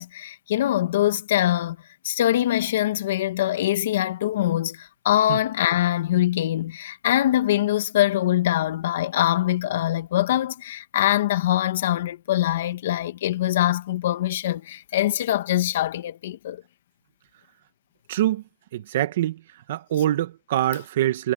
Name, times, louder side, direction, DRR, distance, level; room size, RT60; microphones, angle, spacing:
voice 1, 0.0-1.8 2.0-16.6, left 13 dB, 75° left, 1.5 m, -23 dB
voice 2, 18.1-18.4 18.7-19.4 19.7-21.3, right 13 dB, 75° right, 1.7 m, -24 dB
supercardioid pair, 145°, 0 cm